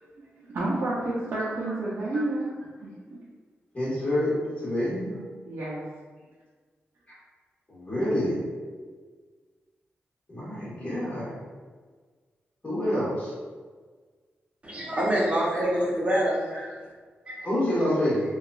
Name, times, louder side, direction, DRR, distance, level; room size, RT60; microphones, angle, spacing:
voice 1, 0.5-2.5 2.8-2.9 5.5-5.8, right 2 dB, 60° right, -7 dB, 0.5 m, -29 dB
voice 2, 1.4-1.7 2.1-2.2 3.7-5.1 7.1-7.2 7.7-8.4 10.3-11.3 12.6-13.3 15.1-15.9 16.5-16.7 17.4-18.2, left 1 dB, 30° left, -9 dB, 1.5 m, -28 dB
voice 3, 14.6-16.5 17.3-17.5, equal, 30° right, -5 dB, 0.9 m, -26 dB
2.7 x 2.3 x 2.4 m, 1.5 s
cardioid pair, 75°, 4 cm